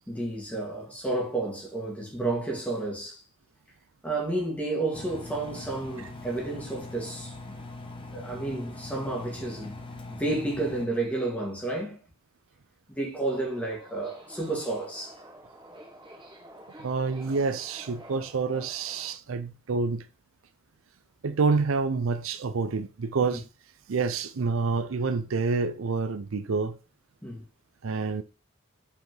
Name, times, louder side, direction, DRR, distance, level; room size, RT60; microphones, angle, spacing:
voice 1, 0.1-3.2 4.0-7.6 8.1-9.8 10.1-12.0 12.9-15.1 23.2-23.4 27.2-27.4, right 2 dB, 5° left, 2.0 m, -31 dB
Engine, 4.9-10.9, left 2 dB, 25° left, 0.9 m, -42 dB
Subway metro underground, 13.2-19.1, right 1 dB, 25° right, 1.1 m, -49 dB
voice 2, 16.8-20.1 21.2-23.4 23.9-26.8 27.8-28.2, right 4 dB, 75° right, 0.5 m, -28 dB
5.6 x 4.6 x 3.8 m
head